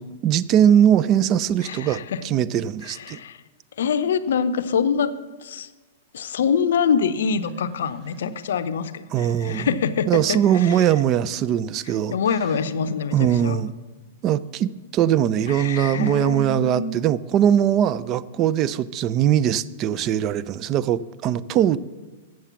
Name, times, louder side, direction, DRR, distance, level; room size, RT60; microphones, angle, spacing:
voice 1, 0.0-3.2 9.1-9.8 10.1-12.2 13.1-13.7 14.2-21.8, right 10 dB, 35° right, 17 dB, 0.4 m, -21 dB
voice 2, 1.6-2.2 2.8-3.4 3.8-5.1 5.4-5.7 6.1-10.8 12.1-13.6 15.5-17.0, left 6 dB, 75° left, 13 dB, 0.5 m, -25 dB
7.6 x 7.3 x 6.9 m, 1.2 s
hypercardioid pair, 115°, 0 cm